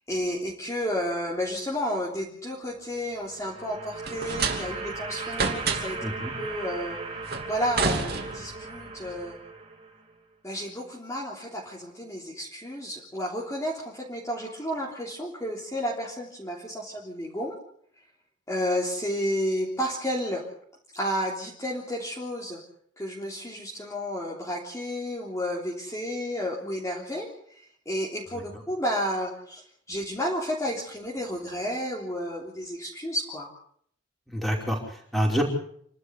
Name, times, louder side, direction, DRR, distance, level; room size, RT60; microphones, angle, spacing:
voice 1, 0.1-6.0 6.4-7.0 7.5-9.4 10.4-17.5 18.5-20.4 20.9-22.6 23.0-33.5, equal, 15° left, -4 dB, 3.5 m, -31 dB
sound 1, 3.0-10.1, right 3 dB, 30° right, 3.0 m, -38 dB
sound 2, 4.0-5.0 5.3-6.1 7.3-8.7, right 4 dB, 50° right, 2.9 m, -29 dB
voice 2, 6.0-6.3 34.3-35.4, equal, ahead, 0 dB, 5.0 m, -27 dB
28.5 x 12.5 x 8.3 m, 0.65 s
head